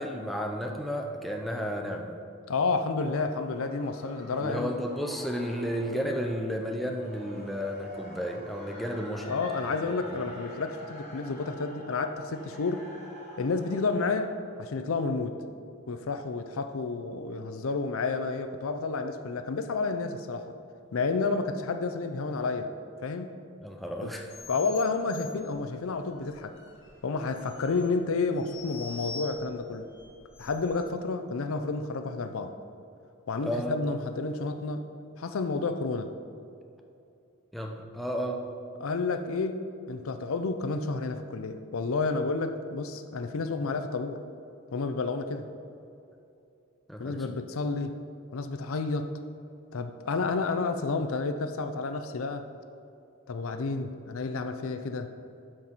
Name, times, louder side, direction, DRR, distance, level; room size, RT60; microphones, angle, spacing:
voice 1, 0.0-2.2 4.4-9.4 9.6-9.8 10.1-10.2 23.6-24.3 33.4-33.8 37.5-38.5 46.9-47.4, equal, ahead, 1 dB, 0.5 m, -33 dB
voice 2, 2.5-4.7 9.3-12.9 13.4-15.4 15.9-20.5 20.9-22.7 23.0-23.3 24.0-24.1 24.5-26.6 27.0-29.9 30.4-32.5 33.3-34.8 35.2-36.1 38.8-44.2 44.7-45.4 47.0-48.0 48.3-49.1 49.7-52.5 53.3-55.1, left 3 dB, 75° left, 8 dB, 0.5 m, -30 dB
sound 1, 3.2-14.2, equal, 30° left, 2.0 m, -48 dB
sound 2, 24.3-30.9, left 4 dB, 55° left, 1.1 m, -46 dB
12.5 x 4.5 x 4.1 m, 2.6 s
head